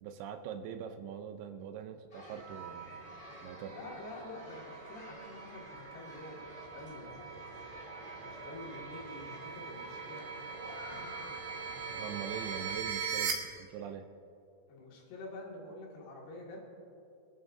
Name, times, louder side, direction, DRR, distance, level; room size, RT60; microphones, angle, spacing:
voice 1, 0.0-3.0 3.4-3.8 11.9-14.1, right 8 dB, 85° right, 7 dB, 2.7 m, -43 dB
sound 1, 2.1-12.7, left 1 dB, 30° left, 1.3 m, -50 dB
sound 2, 2.4-13.3, right 7 dB, 70° right, 2.8 m, -42 dB
voice 2, 3.7-7.4 8.2-11.2 14.7-16.6, left 2 dB, 85° left, -3 dB, 4.2 m, -48 dB
26.5 x 11.0 x 2.7 m, 2.7 s
omnidirectional pair, 4.5 m